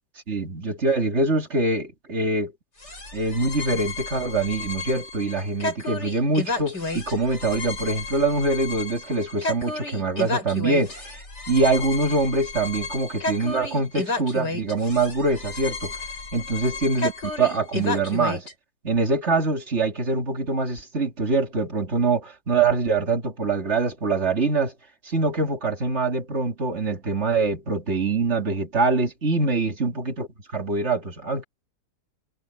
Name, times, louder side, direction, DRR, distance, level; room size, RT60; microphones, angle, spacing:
voice 1, 0.3-2.5 3.1-11.2 11.5-16.0 16.3-18.5 18.8-24.7 25.0-31.4, right 3 dB, 40° right, 2.6 m, -24 dB
sound 1, 2.8-18.5, left 3 dB, 75° left, 8.9 m, -32 dB
omnidirectional pair, 1.8 m